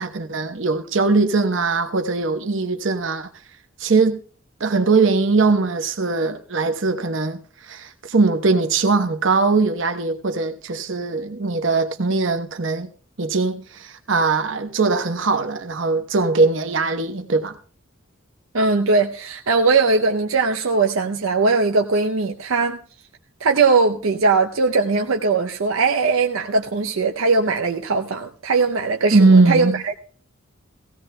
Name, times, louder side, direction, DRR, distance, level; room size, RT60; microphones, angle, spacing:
voice 1, 0.0-3.3 3.8-4.2 4.6-7.4 7.7-12.9 13.2-17.6 29.1-29.8, right 3 dB, 65° right, 0.9 m, -20 dB
voice 2, 18.5-22.8 23.4-30.0, right 4 dB, 85° right, 0.6 m, -20 dB
17.5 x 16.0 x 2.2 m
head